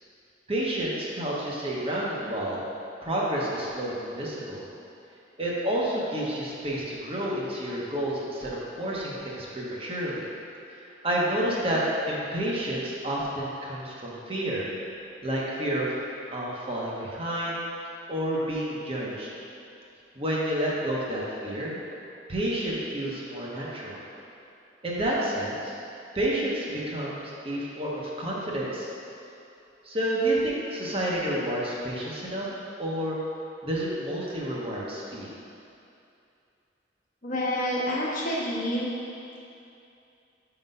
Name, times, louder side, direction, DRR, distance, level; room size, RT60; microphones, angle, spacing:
voice 1, 0.5-2.6 3.0-4.6 5.4-10.3 11.0-11.8 12.1-14.7 15.2-15.9 16.3-17.6 18.1-19.3 20.2-21.8 22.3-24.0 24.8-25.7 26.1-28.9 29.8-32.5 32.8-33.2 33.6-35.3, right 1 dB, 30° right, -5 dB, 0.9 m, -29 dB
voice 2, 37.2-38.9, left 1 dB, 50° left, -6 dB, 1.1 m, -28 dB
5.1 x 4.0 x 5.3 m, 2.7 s
head